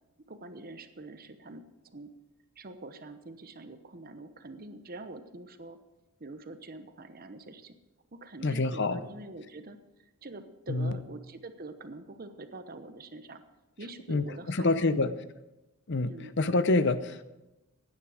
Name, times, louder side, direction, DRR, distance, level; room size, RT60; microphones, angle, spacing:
voice 1, 0.3-1.6 1.9-2.1 2.6-5.8 6.2-7.8 8.1-13.4 13.8-15.0 16.0-16.3, right 2 dB, 40° right, 9 dB, 0.9 m, -45 dB
voice 2, 8.4-9.0 10.7-11.0 14.1-15.1 15.9-17.2, left 2 dB, 55° left, 13 dB, 0.7 m, -27 dB
16.0 x 9.9 x 5.0 m, 1.0 s
head